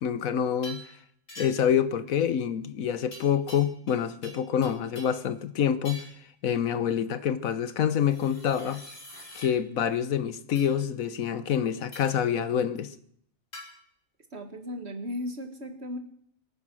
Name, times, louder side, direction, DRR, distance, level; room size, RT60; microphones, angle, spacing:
voice 1, 0.0-0.8 1.4-6.0 6.4-8.8 9.3-12.9, left 8 dB, 85° left, 1.4 m, -27 dB
sound 1, 0.6-0.9 1.3-1.8 3.1-4.0 4.2-5.2 5.8-6.2 7.9-9.5 10.6-10.7 11.9-12.2 13.5-13.7, equal, 70° left, 5.2 m, -45 dB
voice 2, 14.3-16.0, left 1 dB, 50° right, 2.1 m, -36 dB
23.0 x 9.4 x 6.2 m
omnidirectional pair, 1.4 m